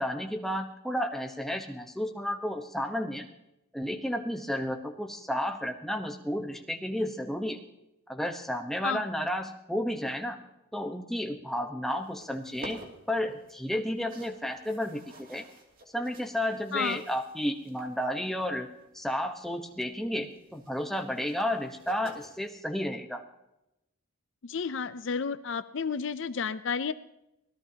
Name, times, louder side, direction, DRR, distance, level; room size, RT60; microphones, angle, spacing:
voice 1, 0.0-3.3 3.7-7.6 8.1-10.4 10.7-12.8 13.1-15.4 15.9-18.7 18.9-23.2, equal, ahead, 3 dB, 1.0 m, -32 dB
sound 1, 11.8-22.5, right 1 dB, 40° right, 2.6 m, -53 dB
voice 2, 16.7-17.0 24.4-26.9, left 6 dB, 60° left, 13 dB, 0.5 m, -31 dB
25.0 x 17.5 x 2.9 m, 0.88 s
head